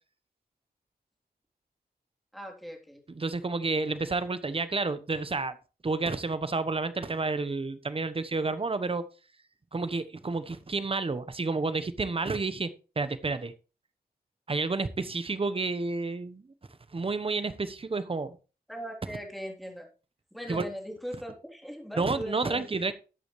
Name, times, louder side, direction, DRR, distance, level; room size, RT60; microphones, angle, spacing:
voice 1, 2.3-3.0 18.7-19.9 20.3-22.8, equal, ahead, 1 dB, 3.4 m, -39 dB
voice 2, 3.1-5.6 5.8-9.0 9.7-12.7 13.0-13.5 14.5-16.5 16.9-18.4 20.5-20.7 22.0-22.9, right 3 dB, 35° right, 13 dB, 1.0 m, -30 dB
13.5 x 8.5 x 3.2 m, 0.33 s
wide cardioid pair, 85°, 17 cm